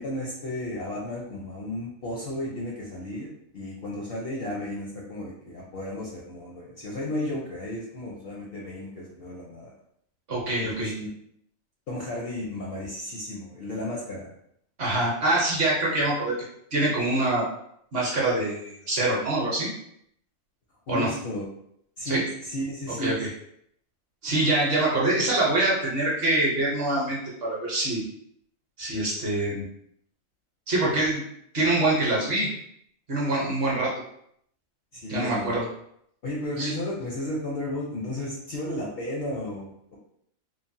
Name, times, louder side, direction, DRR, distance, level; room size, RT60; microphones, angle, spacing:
voice 1, 0.0-9.7 10.6-11.1 11.9-14.3 20.9-21.5 22.0-23.1 34.9-35.5 36.2-40.0, left 1 dB, 60° left, -3 dB, 0.6 m, -33 dB
voice 2, 10.3-10.9 14.8-16.3 16.7-17.4 17.9-19.7 20.9-21.1 22.0-22.2 23.0-23.3 24.2-28.0 28.8-29.7 30.7-31.2 31.5-32.5 33.1-33.9 35.1-35.6 36.6-36.7, right 2 dB, 50° right, -5 dB, 0.8 m, -25 dB
3.2 x 2.1 x 2.6 m, 0.72 s
omnidirectional pair, 1.4 m